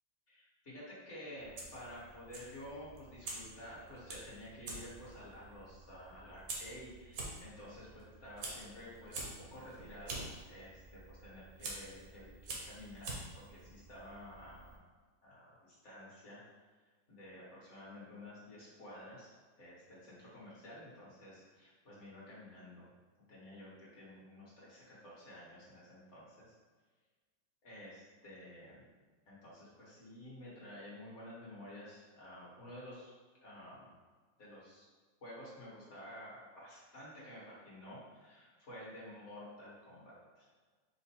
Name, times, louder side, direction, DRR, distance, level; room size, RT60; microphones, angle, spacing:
voice 1, 0.3-7.9 8.2-14.8 15.2-16.4 17.1-19.3 19.6-22.9 23.3-26.4 27.6-28.9 29.3-33.1 33.4-33.9 34.4-34.9 35.2-40.4, left 1 dB, 40° left, -7 dB, 1.4 m, -51 dB
Fire, 1.4-14.8, right 2 dB, 60° right, 1.1 m, -48 dB
4.4 x 2.6 x 4.3 m, 1.4 s
omnidirectional pair, 2.1 m